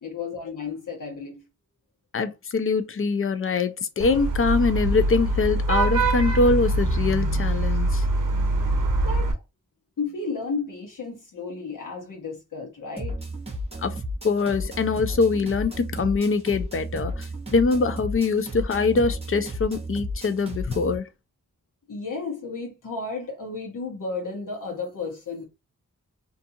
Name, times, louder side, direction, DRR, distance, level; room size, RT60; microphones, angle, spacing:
voice 1, 0.0-1.4 9.0-9.3 10.0-13.2 21.9-25.4, left 4 dB, 70° left, 1.0 m, -33 dB
voice 2, 2.1-8.0 13.8-21.1, left 4 dB, 40° left, 0.4 m, -23 dB
Vehicle horn car horn honking / Traffic noise roadway noise, 4.0-9.3, right 2 dB, 75° right, 0.6 m, -23 dB
sound 1, 13.0-21.0, equal, 20° right, 0.9 m, -33 dB
2.6 x 2.3 x 2.6 m
wide cardioid pair, 80°, 32 cm